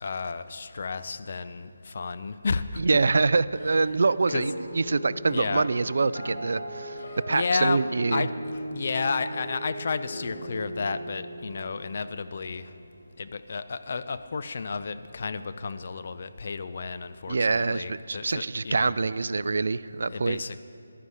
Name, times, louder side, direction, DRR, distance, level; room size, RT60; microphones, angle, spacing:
voice 1, 0.0-2.6 4.3-4.5 5.3-5.7 7.3-8.3 8.7-12.6 13.2-19.0 20.1-20.6, left 4 dB, 50° left, 11 dB, 0.6 m, -32 dB
voice 2, 2.8-7.0 7.3-8.3 17.3-20.4, right 3 dB, 60° right, 16 dB, 0.4 m, -25 dB
sound 1, 4.3-12.8, equal, 80° left, 3.2 m, -38 dB
14.5 x 11.5 x 4.9 m, 2.6 s
figure-of-eight pair, 160°, 0 cm